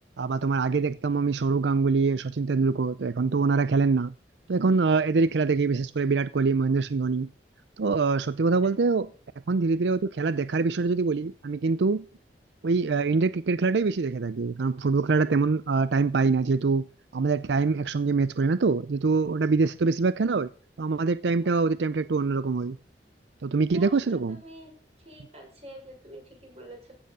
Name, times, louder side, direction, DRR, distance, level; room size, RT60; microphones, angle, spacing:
voice 1, 0.2-4.1 4.5-7.3 7.8-9.1 9.5-12.0 12.6-16.9 17.1-20.5 20.8-22.8 23.4-24.4, right 4 dB, 80° right, 0.5 m, -24 dB
voice 2, 23.7-24.7 25.0-26.9, right 1 dB, 35° right, 6.0 m, -46 dB
15.5 x 7.9 x 6.7 m
head